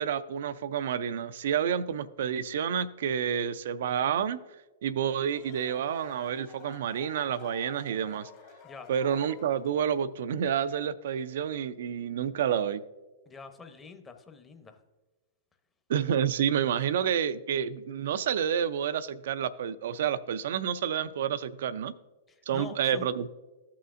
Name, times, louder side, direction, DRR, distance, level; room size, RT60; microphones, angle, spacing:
voice 1, 0.0-4.4 4.8-8.3 8.9-12.8 15.9-21.9 22.5-23.3, right 8 dB, 65° right, 15 dB, 0.4 m, -29 dB
sound 1, 5.1-10.1, left 8 dB, 45° left, 1.6 m, -52 dB
voice 2, 13.3-14.8 16.9-17.1 22.3-23.1, left 4 dB, 20° left, 6 dB, 0.8 m, -45 dB
14.0 x 5.7 x 2.5 m, 1.2 s
hypercardioid pair, 110°, 0 cm